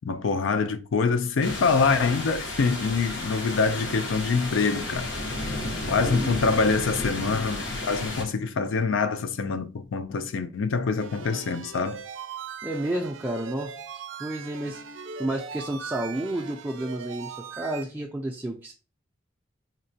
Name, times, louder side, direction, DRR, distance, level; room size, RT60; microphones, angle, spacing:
voice 1, 0.1-5.1 5.9-12.0, left 4 dB, 90° left, 0.4 m, -25 dB
sound 1, 1.2-7.2, equal, 30° left, 0.6 m, -49 dB
sound 2, 1.4-8.2, left 2 dB, 70° left, 0.9 m, -32 dB
sound 3, 11.0-17.8, right 6 dB, 90° right, 0.4 m, -40 dB
voice 2, 12.6-14.8 15.2-18.7, right 1 dB, 10° right, 0.3 m, -31 dB
3.9 x 2.1 x 2.6 m
head